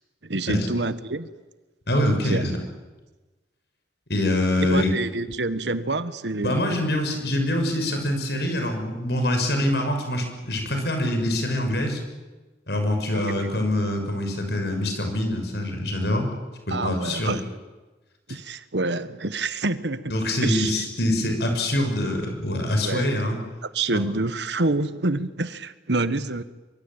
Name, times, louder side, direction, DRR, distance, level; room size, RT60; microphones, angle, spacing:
voice 1, 0.2-1.3 2.2-2.4 4.7-6.6 13.1-13.5 16.7-17.4 18.3-20.1 20.4-20.7 22.8-23.0 23.7-26.4, right 2 dB, 85° right, 13 dB, 1.4 m, -27 dB
voice 2, 1.9-2.5 4.1-4.9 6.4-12.0 12.7-16.3 16.7-17.4 20.1-23.4 23.9-24.0, left 1 dB, 70° left, 5 dB, 6.4 m, -24 dB
24.5 x 23.5 x 9.0 m, 1.2 s
head